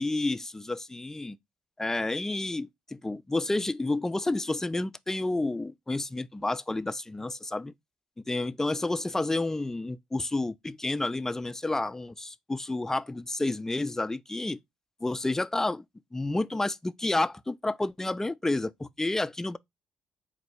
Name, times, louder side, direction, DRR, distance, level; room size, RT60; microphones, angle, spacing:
voice 1, 0.0-1.4 1.8-7.7 8.3-14.6 15.0-15.8 16.1-19.6, left 2 dB, 15° left, 0.3 m, -30 dB
4.3 x 2.2 x 4.1 m
hypercardioid pair, 45°, 3 cm